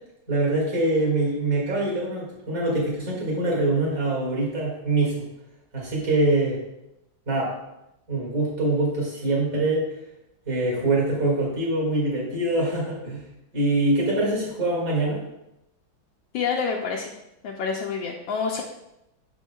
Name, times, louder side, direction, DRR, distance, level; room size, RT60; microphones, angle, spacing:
voice 1, 0.3-5.2 5.7-6.6 7.3-7.6 8.1-9.9 10.5-13.2 13.5-15.2, right 2 dB, 45° right, -4 dB, 2.4 m, -24 dB
voice 2, 16.3-17.1 17.4-18.6, left 5 dB, 75° left, 0 dB, 1.2 m, -27 dB
6.8 x 6.3 x 2.3 m, 0.87 s
omnidirectional pair, 2.2 m